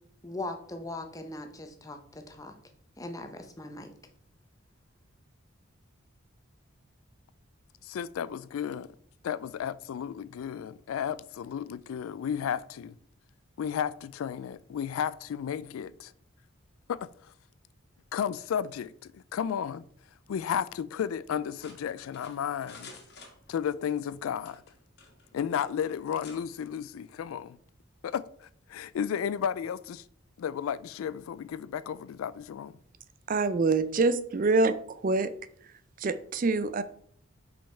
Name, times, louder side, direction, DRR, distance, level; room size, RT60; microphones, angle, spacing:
voice 1, 0.2-2.5 3.0-3.9, left 2 dB, 15° left, 0.7 m, -40 dB
voice 2, 7.8-8.9 9.2-13.0 13.6-16.1 16.9-17.1 18.1-19.8 20.3-22.9 23.5-24.6 25.3-27.6 28.0-30.0 30.4-32.8, left 8 dB, 85° left, 0.3 m, -33 dB
sound 1, 21.6-23.8 24.4-25.3 25.6-25.7 26.2-26.4, left 4 dB, 50° left, 1.6 m, -50 dB
voice 3, 33.3-34.7 35.0-35.3 36.0-36.8, right 3 dB, 40° right, 0.4 m, -25 dB
5.5 x 5.3 x 4.4 m
head